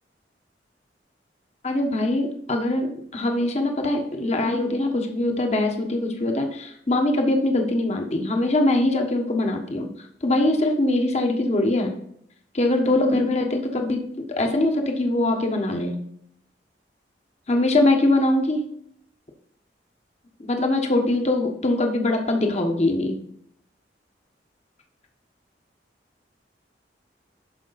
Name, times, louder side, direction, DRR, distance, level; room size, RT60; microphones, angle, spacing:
voice 1, 1.6-2.9 3.1-9.9 10.2-11.9 12.5-14.0 14.4-16.0 17.5-18.6 20.5-23.2, left 2 dB, 40° left, 3 dB, 1.3 m, -22 dB
12.0 x 5.3 x 4.1 m, 0.68 s
head